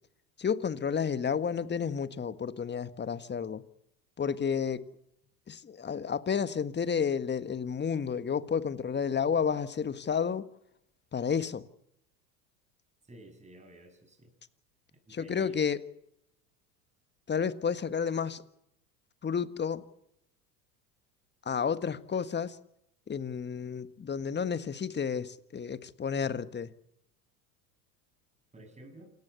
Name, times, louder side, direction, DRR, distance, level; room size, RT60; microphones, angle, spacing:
voice 1, 0.4-3.6 4.2-4.9 5.5-10.5 11.1-11.6 15.1-15.8 17.3-18.4 19.2-19.8 21.4-22.6 23.1-26.7, left 6 dB, 20° left, 1.6 m, -31 dB
voice 2, 13.0-14.3 15.1-15.6 28.5-29.1, right 1 dB, 15° right, 7.5 m, -52 dB
28.0 x 15.5 x 8.2 m
hypercardioid pair, 80°, 50 cm